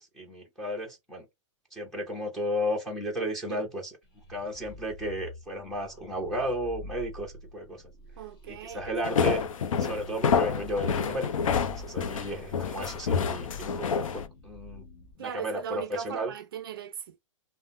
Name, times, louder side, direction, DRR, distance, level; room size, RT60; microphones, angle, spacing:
voice 1, 0.2-1.3 1.7-3.8 4.3-7.8 8.5-9.4 9.8-11.3 11.8-14.0 14.4-14.8 15.2-16.3, equal, ahead, 0.6 m, -33 dB
sound 1, 4.0-15.1, left 1 dB, 45° left, 1.4 m, -48 dB
voice 2, 8.2-9.3 15.2-17.2, right 9 dB, 45° right, 0.4 m, -39 dB
sound 2, 9.0-14.3, left 6 dB, 85° left, 0.6 m, -28 dB
3.5 x 2.0 x 2.5 m
hypercardioid pair, 175°, 17 cm